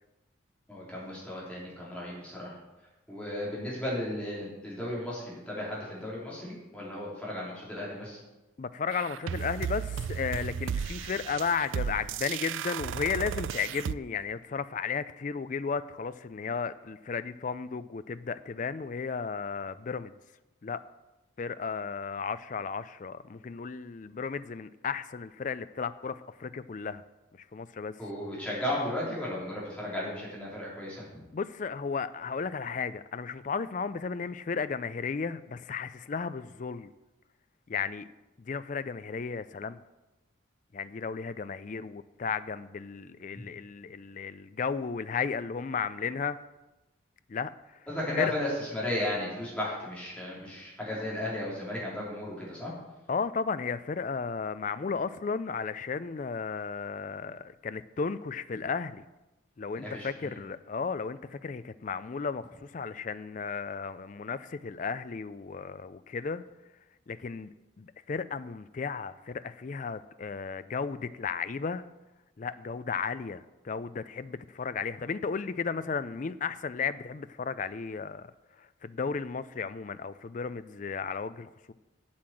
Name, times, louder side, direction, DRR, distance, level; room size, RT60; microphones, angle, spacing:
voice 1, 0.7-2.5 3.1-8.2 28.0-31.0 47.9-52.7 59.8-60.3, left 1 dB, 5° left, -7 dB, 3.4 m, -35 dB
voice 2, 8.6-20.1 20.6-20.8 21.4-27.0 27.4-28.0 31.3-36.9 37.7-38.1 38.4-39.8 40.7-46.4 47.3-47.9 48.2-48.3 53.1-59.1 59.6-66.4 67.1-71.9 72.4-81.7, left 5 dB, 40° left, 14 dB, 0.4 m, -34 dB
sound 1, 8.9-13.9, right 7 dB, 70° right, 0.3 m, -34 dB
8.4 x 7.8 x 7.6 m, 1.0 s
head